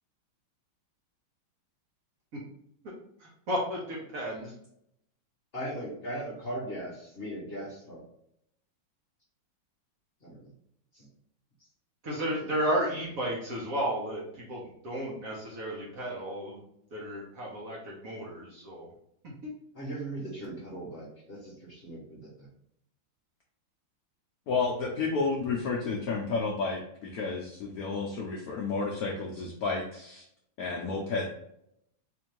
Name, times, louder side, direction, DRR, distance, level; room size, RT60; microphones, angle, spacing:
voice 1, 3.2-4.5 12.0-16.6 16.9-18.9 19.4-19.5, right 1 dB, 55° right, -4 dB, 1.1 m, -33 dB
voice 2, 5.5-8.0 10.2-10.4 10.9-11.1 12.4-12.5 19.7-22.5, right 1 dB, 40° left, -5 dB, 0.9 m, -39 dB
voice 3, 24.5-30.2 30.6-31.3, left 4 dB, 85° left, 0 dB, 0.8 m, -31 dB
4.3 x 2.6 x 3.0 m, 0.74 s
omnidirectional pair, 2.2 m